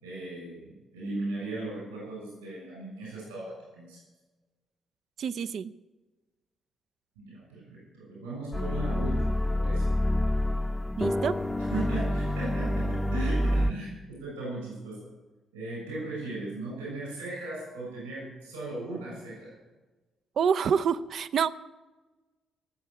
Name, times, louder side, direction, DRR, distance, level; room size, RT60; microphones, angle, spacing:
voice 1, 0.0-4.0 7.2-9.9 11.6-15.1 15.5-19.5, right 2 dB, 80° right, -4 dB, 6.5 m, -37 dB
voice 2, 5.2-5.7 11.0-11.3 20.4-21.6, right 7 dB, 55° right, 11 dB, 0.6 m, -27 dB
sound 1, 8.5-13.7, left 1 dB, 10° left, 0.9 m, -27 dB
17.5 x 7.4 x 8.2 m, 1.2 s
figure-of-eight pair, 45°, 0 cm